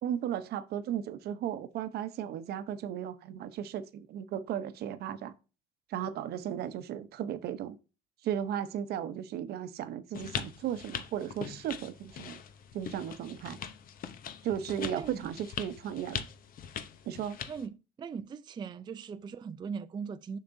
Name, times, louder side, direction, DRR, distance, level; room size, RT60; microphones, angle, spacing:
voice 1, 0.0-5.3 5.9-7.8 8.2-12.4 12.7-13.6 14.4-16.2 17.1-17.4, right 9 dB, 70° right, 0.8 m, -35 dB
sound 1, 10.1-17.7, left 8 dB, 55° left, 0.7 m, -41 dB
voice 2, 14.9-15.3 17.5-20.4, right 6 dB, 25° right, 0.4 m, -39 dB
6.9 x 6.4 x 2.6 m
cardioid pair, 110°, 17 cm